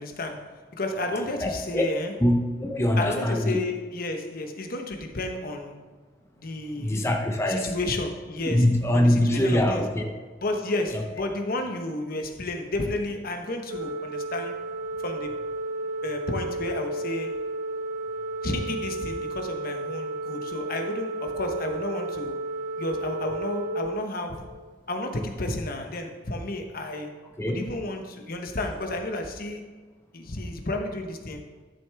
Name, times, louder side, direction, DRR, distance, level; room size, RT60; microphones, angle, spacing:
voice 1, 0.0-2.1 3.0-5.8 6.4-7.1 7.6-8.7 8.9-9.8 10.4-14.6 15.0-15.3 16.0-17.5 18.4-22.4 22.8-24.5 24.9-27.1 27.5-29.6 30.1-31.4, left 2 dB, 55° left, 5 dB, 1.0 m, -32 dB
voice 2, 1.4-1.9 2.2-3.6 6.8-7.8 8.5-10.1 27.4-27.6, left 1 dB, 15° left, 2 dB, 0.7 m, -23 dB
Organ, 13.7-24.8, right 2 dB, 50° right, 1.1 m, -33 dB
12.0 x 7.0 x 3.4 m, 1.4 s
head